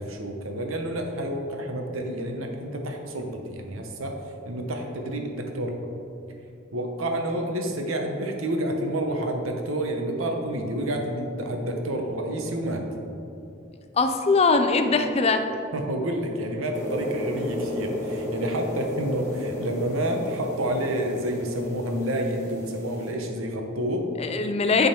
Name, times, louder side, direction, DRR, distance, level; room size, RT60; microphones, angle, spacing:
voice 1, 0.0-4.2 4.4-5.9 6.7-12.9 15.7-24.1, right 1 dB, 90° right, 3 dB, 0.9 m, -29 dB
voice 2, 13.9-15.4 24.2-24.9, left 4 dB, 30° left, 7 dB, 0.4 m, -21 dB
sound 1, 16.7-23.1, left 1 dB, 15° left, 1.3 m, -33 dB
10.5 x 3.8 x 4.3 m, 2.7 s
head